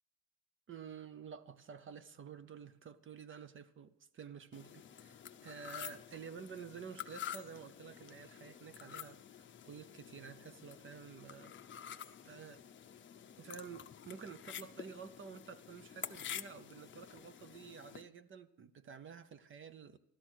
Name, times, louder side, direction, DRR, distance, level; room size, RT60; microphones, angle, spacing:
voice 1, 0.7-11.5 12.2-12.6 13.4-20.0, right 6 dB, 40° right, 0.7 m, -51 dB
sound 1, 4.5-18.0, left 9 dB, 40° left, 0.7 m, -49 dB
15.0 x 12.5 x 6.3 m
cardioid pair, 155°, 31 cm